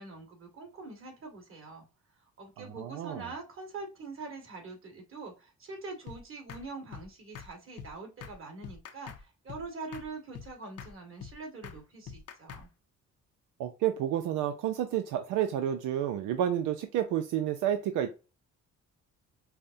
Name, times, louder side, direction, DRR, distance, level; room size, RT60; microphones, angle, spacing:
voice 1, 0.0-1.9 2.4-12.7, right 3 dB, 45° right, 1 dB, 2.0 m, -44 dB
voice 2, 2.6-3.3 13.6-18.1, right 10 dB, 90° right, 7 dB, 0.5 m, -30 dB
sound 1, 6.1-6.2 6.5-6.6 6.9-7.1 7.3-7.5 7.8-7.9 8.2-8.4 8.6-9.2 9.5-9.6 9.9-10.1 10.3-10.5 10.8-10.9 11.2-11.3 11.6-11.8 12.1-12.6, left 7 dB, 55° left, 0.7 m, -44 dB
5.6 x 2.1 x 2.6 m, 0.30 s
cardioid pair, 90°, 30 cm